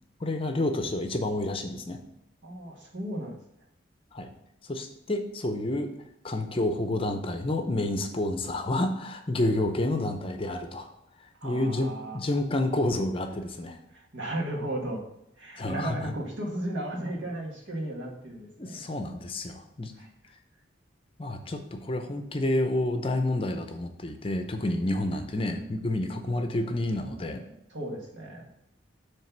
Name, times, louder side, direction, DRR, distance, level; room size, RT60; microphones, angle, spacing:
voice 1, 0.2-2.0 4.1-4.3 4.7-5.9 6.2-10.9 11.4-13.8 15.5-16.1 18.6-19.9 21.2-27.4, left 1 dB, 30° left, 6 dB, 0.6 m, -29 dB
voice 2, 2.4-3.4 11.4-12.2 13.9-15.0 15.4-18.8 20.0-20.1 27.7-28.5, right 1 dB, 75° right, -1 dB, 1.8 m, -35 dB
7.4 x 3.4 x 5.9 m, 0.79 s
head